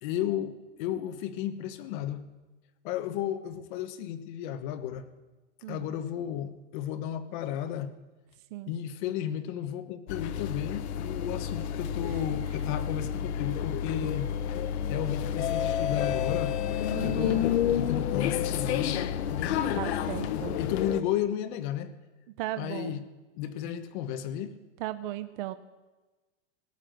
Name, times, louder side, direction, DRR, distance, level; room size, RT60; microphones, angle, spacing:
voice 1, 0.0-2.3 2.8-5.1 5.7-7.9 8.7-14.3 14.9-16.6 17.0-19.0 19.3-19.6 20.3-21.9 22.6-23.0 23.4-24.6, left 10 dB, 40° left, 10 dB, 1.1 m, -33 dB
sound 1, 10.1-21.0, left 9 dB, 65° left, 0.9 m, -30 dB
voice 2, 16.9-17.5 19.7-20.6 22.4-23.1 24.8-25.5, right 14 dB, 45° right, 11 dB, 0.7 m, -36 dB
18.5 x 8.4 x 9.2 m, 1.2 s
supercardioid pair, 170°, 35 cm